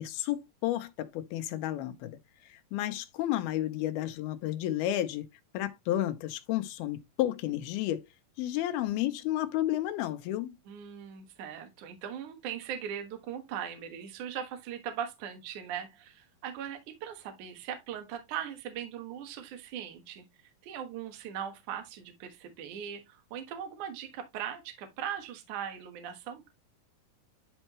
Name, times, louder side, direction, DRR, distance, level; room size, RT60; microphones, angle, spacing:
voice 1, 0.0-2.2 2.5-5.3 5.5-8.0 8.4-10.5, left 13 dB, 85° left, 2.8 m, -32 dB
voice 2, 10.7-20.2 20.6-26.5, right 9 dB, 60° right, 2.6 m, -39 dB
11.0 x 4.5 x 3.0 m
omnidirectional pair, 4.3 m